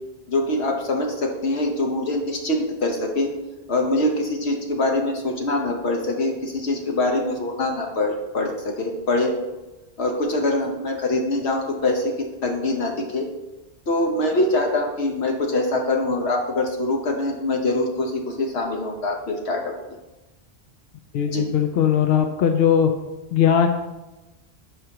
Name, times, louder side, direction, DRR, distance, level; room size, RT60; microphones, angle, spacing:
voice 1, 0.3-3.3 3.7-9.4 10.0-13.3 13.9-19.7 21.3-21.5, left 2 dB, 90° left, 2 dB, 1.3 m, -24 dB
voice 2, 21.1-22.9 23.3-23.7, left 8 dB, 70° left, 6 dB, 0.8 m, -19 dB
10.0 x 5.0 x 2.9 m, 1.1 s
omnidirectional pair, 1.1 m